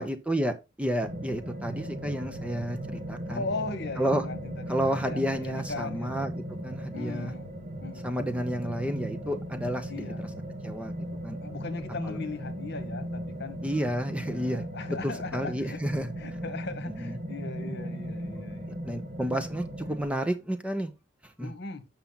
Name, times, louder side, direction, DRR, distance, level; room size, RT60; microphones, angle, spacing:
voice 1, 0.0-3.4 4.0-4.2 4.7-6.3 6.6-7.3 8.0-10.0 10.6-10.9 11.2-11.4 12.0-12.2 13.6-16.1 17.0-17.1 18.3-18.4 18.8-20.9 21.2-21.5, right 1 dB, 5° right, 0.8 m, -31 dB
sound 1, 1.0-20.0, equal, 40° right, 1.8 m, -37 dB
voice 2, 3.3-6.1 6.9-7.6 7.8-8.1 9.9-10.3 11.4-13.6 14.2-15.8 16.2-18.7 21.4-21.9, left 3 dB, 60° left, 1.3 m, -38 dB
7.3 x 5.8 x 4.0 m
head